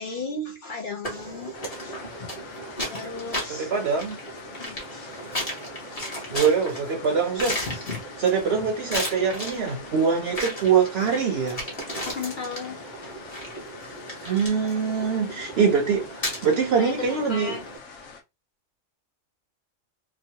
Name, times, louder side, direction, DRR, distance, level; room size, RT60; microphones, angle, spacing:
voice 1, 0.0-1.6 1.8-1.9 2.2-2.3 2.9-3.7 4.6-5.2 7.7-8.0 9.5-9.6 12.0-13.1 16.8-17.6, left 3 dB, 50° left, 0.6 m, -35 dB
sound 1, 1.0-17.8, equal, 30° left, 1.1 m, -35 dB
sound 2, 1.5-18.2, left 5 dB, 75° left, 1.1 m, -44 dB
voice 2, 3.5-4.2 6.3-7.6 8.2-11.6 14.3-17.6, right 6 dB, 65° right, 0.7 m, -23 dB
3.0 x 2.2 x 2.7 m
omnidirectional pair, 1.4 m